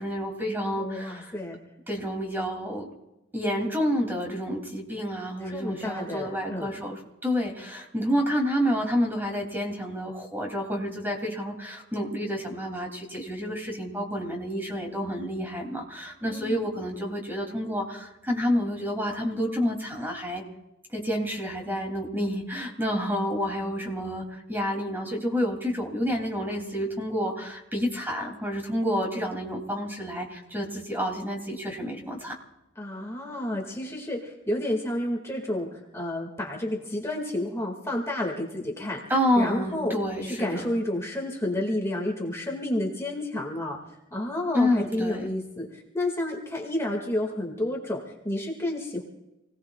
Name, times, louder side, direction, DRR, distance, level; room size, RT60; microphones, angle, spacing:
voice 1, 0.0-1.3 1.9-2.9 3.3-20.4 20.9-32.3 39.1-40.6 44.5-45.2, equal, 10° right, 1 dB, 2.8 m, -29 dB
voice 2, 0.8-1.6 5.4-6.8 16.2-16.7 32.8-39.0 39.3-39.9 40.2-43.8 44.1-49.0, left 1 dB, 15° left, 0 dB, 2.1 m, -30 dB
29.0 x 18.5 x 2.4 m, 0.95 s
head